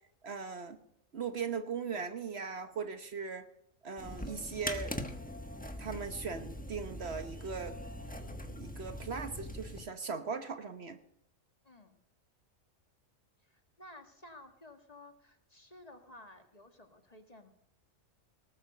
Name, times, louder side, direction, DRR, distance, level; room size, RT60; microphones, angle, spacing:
voice 1, 0.2-0.8 1.1-3.5 3.8-5.0 5.8-7.8 8.5-11.0, right 5 dB, 55° right, 9 dB, 1.2 m, -39 dB
sound 1, 4.0-9.9, left 1 dB, 5° left, 1.2 m, -42 dB
voice 2, 11.6-12.0 13.4-17.5, left 1 dB, 30° left, 6 dB, 1.7 m, -54 dB
19.0 x 8.6 x 6.6 m, 0.75 s
omnidirectional pair, 1.4 m